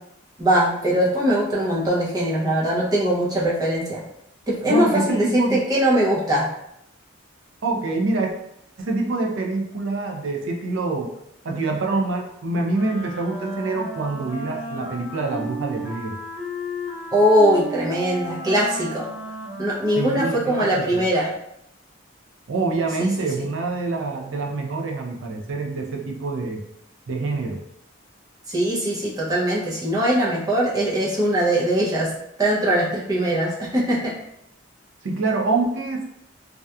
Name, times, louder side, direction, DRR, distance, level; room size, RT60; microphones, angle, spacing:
voice 1, 0.4-4.0 4.5-6.4 17.1-19.1 19.6-21.3 23.0-23.1 28.5-32.1 32.4-34.1, right 1 dB, 20° right, -5 dB, 0.5 m, -21 dB
voice 2, 4.7-5.6 7.6-8.3 8.8-11.1 11.4-16.2 20.0-21.0 22.5-26.6 27.1-27.6 35.0-36.0, right 3 dB, 75° right, 1 dB, 0.5 m, -25 dB
Wind instrument woodwind instrument, 12.7-20.9, equal, ahead, 0.9 m, -34 dB
2.7 x 2.3 x 2.2 m, 0.78 s
head